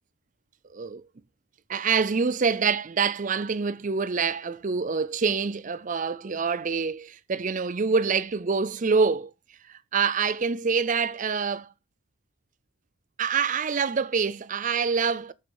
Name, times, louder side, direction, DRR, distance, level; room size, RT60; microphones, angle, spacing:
voice 1, 0.7-1.0 1.7-9.3 9.7-11.7 13.2-15.3, right 5 dB, 35° right, 0.5 m, -26 dB
8.5 x 6.8 x 3.9 m
head